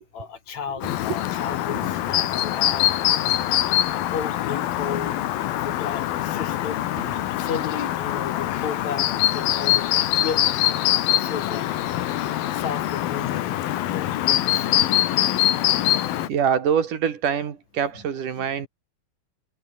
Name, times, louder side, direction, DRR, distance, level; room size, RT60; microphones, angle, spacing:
voice 1, 0.1-3.0 3.7-6.8 7.1-10.6 11.1-12.2 12.5-14.9 18.4-18.7, left 7 dB, 55° left, 3.2 m, -34 dB
Chirp tweet, 0.8-16.3, left 13 dB, 90° left, 3.2 m, -23 dB
sound 1, 6.8-8.1 12.9-13.0, right 5 dB, 85° right, 7.4 m, -45 dB
voice 2, 16.3-18.7, right 8 dB, 65° right, 3.8 m, -24 dB
omnidirectional pair, 4.1 m